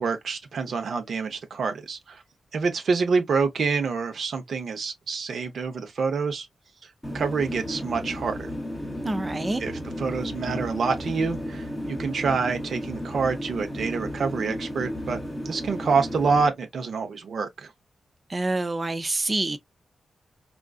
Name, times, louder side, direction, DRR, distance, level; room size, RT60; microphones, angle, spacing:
voice 1, 0.0-2.2 2.5-6.5 7.1-8.5 9.6-15.2 15.4-17.7, right 5 dB, 60° right, 0.8 m, -27 dB
sound 1, 7.0-16.5, equal, 5° left, 0.8 m, -33 dB
voice 2, 9.0-9.6 18.3-19.6, right 2 dB, 20° right, 0.4 m, -27 dB
3.7 x 2.4 x 2.3 m
wide cardioid pair, 170°, 0 cm